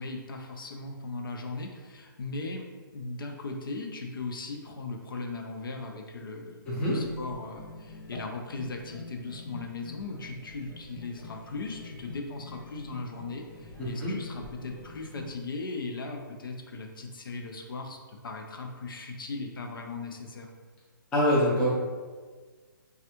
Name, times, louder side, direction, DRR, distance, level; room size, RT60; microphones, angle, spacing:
voice 1, 0.0-20.5, left 3 dB, 75° left, 2 dB, 0.5 m, -38 dB
sound 1, 6.6-15.3, left 2 dB, 90° left, 1.1 m, -46 dB
voice 2, 6.7-7.0 13.8-14.2 21.1-21.7, equal, 5° left, -8 dB, 0.4 m, -25 dB
3.2 x 2.3 x 2.9 m, 1.4 s
hypercardioid pair, 165°, 12 cm